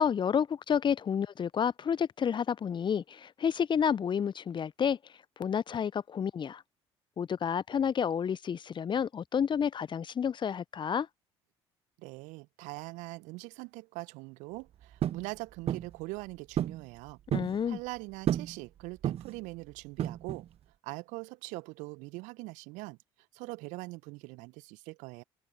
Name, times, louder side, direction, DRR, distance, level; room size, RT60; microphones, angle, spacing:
voice 1, 0.0-5.0 5.4-6.6 7.2-11.1 17.3-17.8, left 7 dB, 35° left, 0.8 m, -30 dB
voice 2, 12.0-17.2 17.7-20.5 20.8-23.0 23.3-25.2, right 24 dB, 65° right, 1.5 m, -42 dB
sound 1, 15.0-15.3 15.7-15.9 16.6-16.8 17.1-17.6 18.3-18.6 19.0-19.4 20.0-20.5, right 10 dB, 45° right, 0.9 m, -31 dB
figure-of-eight pair, 50°, 14 cm